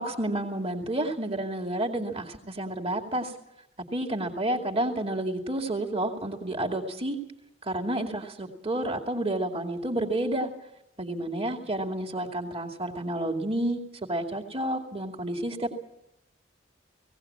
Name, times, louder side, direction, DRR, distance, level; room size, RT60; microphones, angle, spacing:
voice 1, 0.0-3.3 3.9-7.2 7.6-10.5 11.0-15.7, right 1 dB, 30° right, 1 dB, 2.3 m, -30 dB
18.5 x 17.5 x 8.6 m, 0.85 s
head